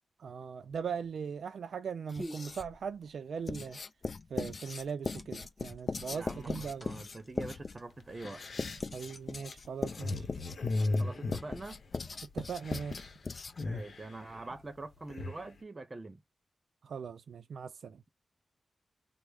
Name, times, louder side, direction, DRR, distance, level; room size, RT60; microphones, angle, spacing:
voice 1, 0.2-3.8 4.3-6.9 8.9-10.3 12.3-13.1 16.8-18.0, right 6 dB, 90° right, 0.3 m, -39 dB
sound 1, 0.6-10.2, equal, 15° left, 1.0 m, -52 dB
Writing, 2.1-2.8 3.5-13.8, left 4 dB, 55° left, 0.4 m, -39 dB
sound 2, 6.1-6.8 7.5-7.6 8.0-12.2 12.5-13.2 13.4-15.5, left 2 dB, 70° left, 0.8 m, -37 dB
voice 2, 6.1-8.5 11.0-11.8 13.6-16.2, right 2 dB, 35° right, 0.7 m, -44 dB
3.4 x 2.0 x 3.3 m
cardioid pair, 70°, 0 cm